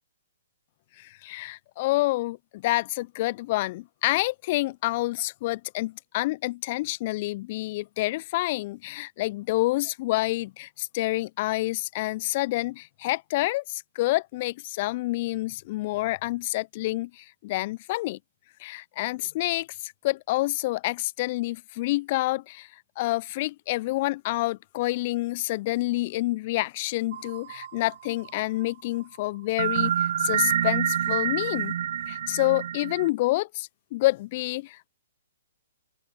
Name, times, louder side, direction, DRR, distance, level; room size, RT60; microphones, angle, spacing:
voice 1, 1.0-18.2 18.6-31.8 32.1-34.9, left 19 dB, 45° left, 0.4 m, -28 dB
sound 1, 27.1-28.4 29.6-33.1, right 10 dB, 55° right, 0.7 m, -27 dB
open air
figure-of-eight pair, 120°, 0 cm